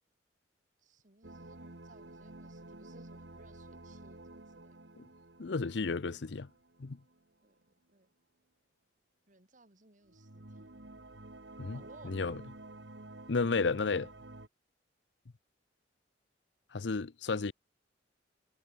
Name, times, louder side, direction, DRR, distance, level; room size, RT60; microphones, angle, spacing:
voice 1, 0.8-4.8 7.4-7.6 7.9-8.1 9.3-10.7 11.7-12.2, right 2 dB, 45° right, 2.8 m, -61 dB
sound 1, 1.2-7.2 10.1-14.5, right 2 dB, 70° right, 2.1 m, -51 dB
voice 2, 5.4-6.5 6.8-7.0 11.6-12.4 13.3-14.1 16.7-17.5, left 4 dB, 70° left, 0.7 m, -33 dB
head